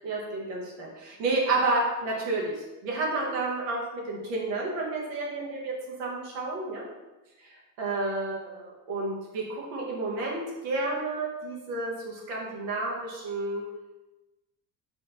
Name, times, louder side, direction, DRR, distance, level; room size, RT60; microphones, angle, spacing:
voice 1, 0.0-2.5 2.8-5.7 6.0-6.8 7.8-13.6, right 2 dB, 85° right, -3 dB, 1.5 m, -30 dB
4.2 x 2.6 x 4.4 m, 1.1 s
supercardioid pair, 90°, 47 cm